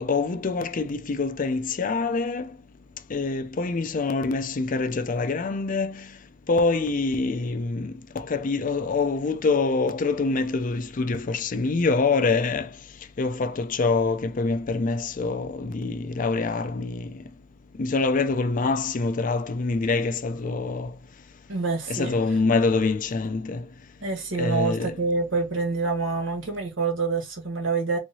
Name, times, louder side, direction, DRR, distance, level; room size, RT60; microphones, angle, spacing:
voice 1, 0.0-2.5 3.1-6.0 6.5-12.7 13.2-17.1 17.8-20.9 21.9-23.6 24.4-24.9, left 3 dB, 45° left, 0.5 m, -25 dB
voice 2, 21.5-22.1 24.0-28.0, right 4 dB, 85° right, 1.4 m, -26 dB
3.5 x 3.1 x 2.7 m
head